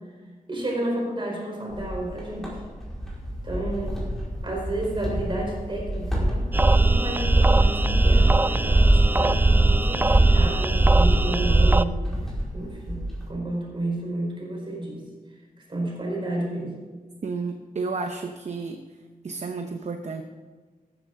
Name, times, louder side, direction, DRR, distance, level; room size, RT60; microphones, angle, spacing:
voice 1, 0.5-2.5 3.4-4.0 4.4-12.0 12.5-15.0 15.7-16.7, right 1 dB, 35° right, -1 dB, 4.1 m, -31 dB
sound 1, 1.7-13.3, equal, 5° left, 4.6 m, -30 dB
sound 2, 6.5-11.8, right 2 dB, 15° right, 0.3 m, -19 dB
voice 2, 17.2-18.8 19.2-20.2, right 4 dB, 50° right, 6 dB, 0.8 m, -31 dB
14.0 x 13.0 x 3.8 m, 1.4 s
wide cardioid pair, 135°, 15 cm